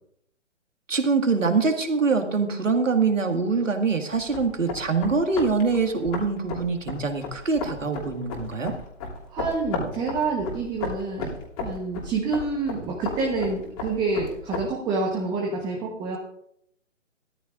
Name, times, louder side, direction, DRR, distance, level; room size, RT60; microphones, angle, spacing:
voice 1, 0.9-8.7, right 4 dB, 80° right, 5 dB, 2.0 m, -24 dB
sound 1, 4.1-14.7, left 3 dB, 30° left, 2.9 m, -35 dB
voice 2, 9.3-16.2, right 3 dB, 10° right, 0 dB, 1.1 m, -28 dB
16.0 x 13.5 x 2.6 m, 0.75 s
figure-of-eight pair, 140°, 38 cm